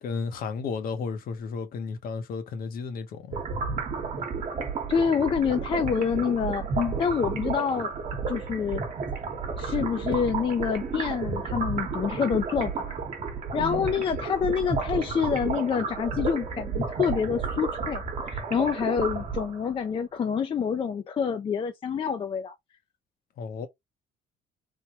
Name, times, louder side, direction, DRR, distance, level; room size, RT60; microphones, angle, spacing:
voice 1, 0.0-3.4 13.6-13.9 23.4-23.7, left 5 dB, 60° left, 0.8 m, -33 dB
sound 1, 3.3-19.7, right 5 dB, 45° right, 1.1 m, -32 dB
voice 2, 4.9-7.9 8.3-8.8 9.6-12.9 13.5-22.5, left 7 dB, 30° left, 0.4 m, -27 dB
3.4 x 2.2 x 2.9 m
cardioid pair, 110°, 17 cm